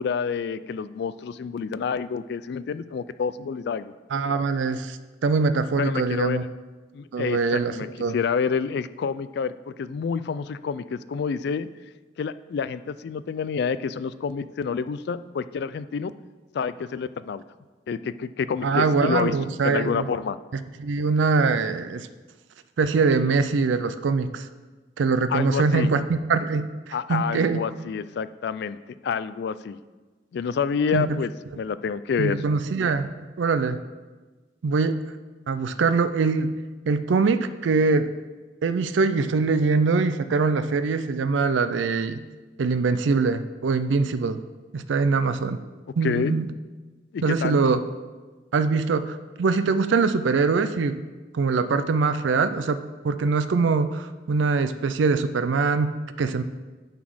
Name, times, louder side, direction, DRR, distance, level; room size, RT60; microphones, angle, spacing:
voice 1, 0.0-3.9 5.8-6.5 6.9-11.7 12.2-16.1 16.5-17.4 17.9-19.3 19.6-20.4 25.3-25.9 26.9-28.8 29.0-29.8 30.3-31.3 31.6-32.4 46.0-46.3 47.1-47.6, left 6 dB, 60° left, 15 dB, 0.3 m, -28 dB
voice 2, 4.1-6.4 7.1-8.1 18.6-20.1 20.8-22.1 22.8-24.5 25.0-27.6 30.9-31.1 32.2-33.1 33.4-33.8 34.6-34.9 35.5-36.5 36.9-38.1 38.6-42.2 42.6-44.4 44.7-45.6 46.0-46.5 47.2-47.8 48.5-50.9 51.3-56.4, right 4 dB, 80° right, 12 dB, 0.4 m, -23 dB
9.4 x 4.1 x 6.2 m, 1.3 s
head